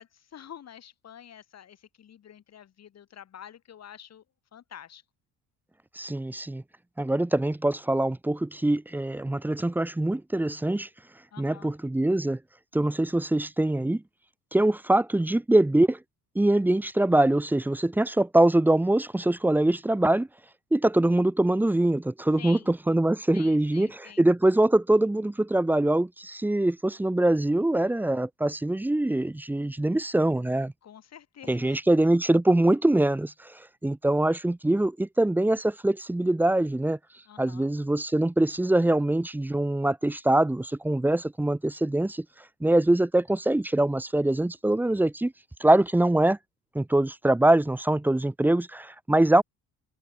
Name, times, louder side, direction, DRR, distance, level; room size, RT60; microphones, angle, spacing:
voice 1, 0.0-4.2 4.5-5.0 11.3-11.8 22.4-22.7 23.3-24.3 30.8-31.8 37.3-37.7, left 9 dB, 40° left, 4.4 m, -48 dB
voice 2, 6.0-6.6 7.0-10.9 11.4-12.4 12.7-14.0 14.5-16.0 16.3-20.3 20.7-30.7 31.5-37.0 37.4-42.2 42.6-45.3 45.6-46.4 46.7-49.4, right 1 dB, 5° right, 0.6 m, -23 dB
cardioid pair, 155°, 38 cm